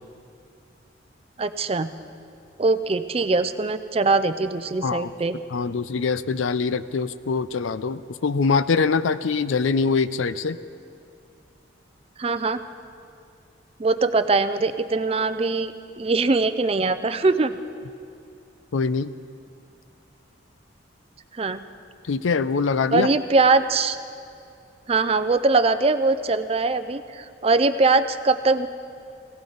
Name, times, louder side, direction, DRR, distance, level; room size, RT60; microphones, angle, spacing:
voice 1, 1.4-1.9 2.6-5.4 12.2-12.6 13.8-17.5 21.4-21.6 22.9-24.0 24.9-28.7, right 3 dB, 30° right, 11 dB, 0.5 m, -22 dB
voice 2, 5.5-10.6 18.7-19.1 22.1-23.1, left 4 dB, 85° left, 14 dB, 0.5 m, -23 dB
18.5 x 17.0 x 4.0 m, 2.5 s
head